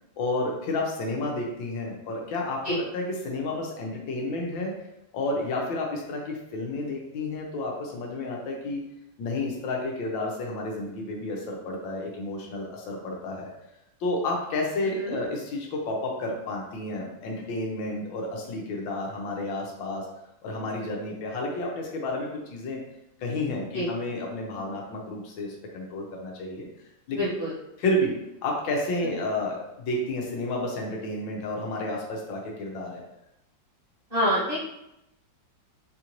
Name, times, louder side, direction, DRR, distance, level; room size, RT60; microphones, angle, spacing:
voice 1, 0.2-4.8 5.1-8.8 9.2-13.5 14.0-20.1 20.4-22.8 23.2-26.7 27.1-27.3 27.8-28.2 28.4-33.0, left 2 dB, 80° left, -1 dB, 1.5 m, -31 dB
voice 2, 27.2-27.5 34.1-34.6, equal, 35° right, -9 dB, 1.2 m, -26 dB
4.5 x 2.5 x 2.9 m, 0.85 s
omnidirectional pair, 2.1 m